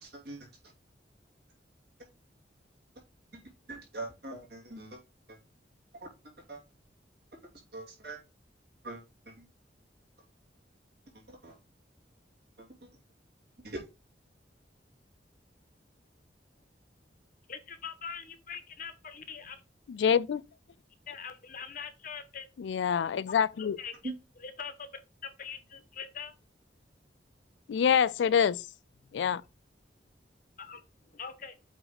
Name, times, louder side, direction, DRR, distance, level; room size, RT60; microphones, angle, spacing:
voice 1, 0.0-0.5 3.7-5.0 5.3-5.4 6.5-6.6 7.7-8.2 8.8-9.4 11.3-11.6 12.6-12.7 13.6-13.8 24.0-24.1, right 2 dB, 65° right, 2.5 m, -42 dB
voice 2, 17.5-19.6 21.1-22.5 23.6-24.9 25.2-26.3 30.6-30.8 31.1-31.6, left 6 dB, 50° left, 0.9 m, -43 dB
voice 3, 19.9-20.4 22.6-23.8 27.7-28.6 29.1-29.4, left 7 dB, 85° left, 0.3 m, -26 dB
7.9 x 3.0 x 3.9 m
head